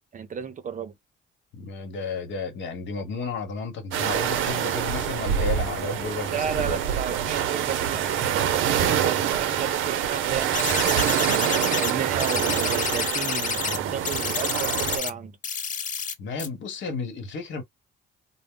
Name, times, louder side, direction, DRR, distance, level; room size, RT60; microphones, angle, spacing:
voice 1, 0.1-0.9 6.3-10.7 11.4-15.3, right 7 dB, 40° right, 0.6 m, -33 dB
voice 2, 1.5-6.8 16.2-17.6, left 4 dB, 70° left, 1.1 m, -32 dB
sound 1, 3.9-15.0, right 9 dB, 85° right, 0.5 m, -26 dB
sound 2, 10.5-11.9 12.2-13.8 14.0-15.1 15.4-16.1 16.4-16.5, left 6 dB, 40° left, 0.6 m, -29 dB
2.0 x 2.0 x 3.6 m
cardioid pair, 90°, 20 cm